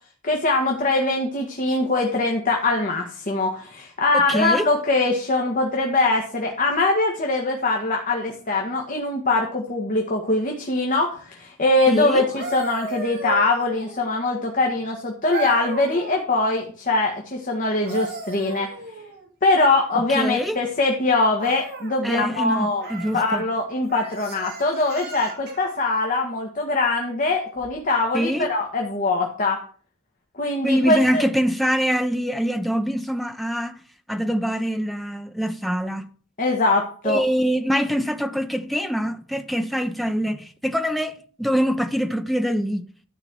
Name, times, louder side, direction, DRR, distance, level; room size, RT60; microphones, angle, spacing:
voice 1, 0.2-18.7 19.4-22.9 23.1-29.6 30.4-31.2 36.4-37.2, left 2 dB, 40° left, 2.0 m, -22 dB
voice 2, 4.1-4.7 11.9-12.2 19.9-20.6 22.0-23.4 28.1-28.5 30.6-33.8 34.1-36.0 37.0-41.1 41.4-42.8, equal, ahead, 0.9 m, -24 dB
sound 1, 12.1-14.1 15.3-16.2 17.6-19.3 21.4-22.0 22.8-23.2 23.9-25.7 27.6-27.8, right 3 dB, 50° right, 3.6 m, -34 dB
12.5 x 5.8 x 7.7 m
head